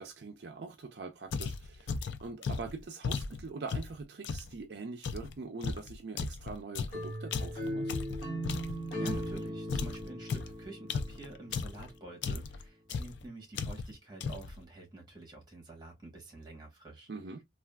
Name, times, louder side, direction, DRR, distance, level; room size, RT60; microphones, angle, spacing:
voice 1, 0.0-8.0 17.1-17.4, right 4 dB, 60° right, 0.4 m, -43 dB
sound 1, 1.3-4.5 5.0-9.4 9.7-11.9 12.2-12.6 12.9-13.2 13.5-14.0 14.2-14.6, left 5 dB, 75° left, 0.4 m, -36 dB
sound 2, 6.9-11.8, equal, 45° left, 1.5 m, -38 dB
voice 2, 9.0-17.1, right 2 dB, 20° right, 1.2 m, -48 dB
3.3 x 2.4 x 2.2 m
head